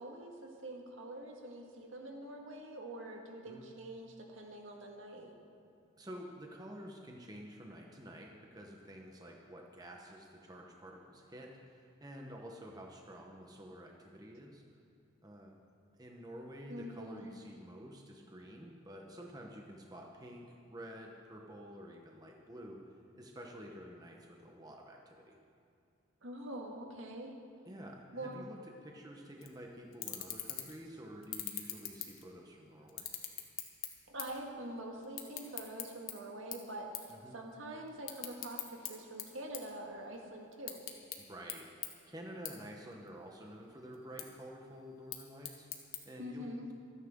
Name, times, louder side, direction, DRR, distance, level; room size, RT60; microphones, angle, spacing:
voice 1, 0.0-5.4 16.7-17.3 26.2-27.3 28.1-28.5 34.1-40.8 46.2-46.7, right 1 dB, 75° right, 1 dB, 1.8 m, -45 dB
voice 2, 6.0-14.6 15.2-15.6 16.0-25.4 27.7-33.1 37.1-37.4 41.2-46.7, equal, 20° right, 0 dB, 1.0 m, -50 dB
sound 1, 29.4-29.5 29.9-30.8 31.2-32.5 32.9-34.5 34.7-36.1 36.5-36.7 36.9-37.1 37.5-38.9 39.2-40.2 40.5-41.2 41.5-41.6 41.8-41.9 42.5-42.6 42.9-43.5 43.9-44.2 44.9-46.0, left 11 dB, 85° left, 1.4 m, -41 dB
25.0 x 9.8 x 3.7 m, 2.5 s
head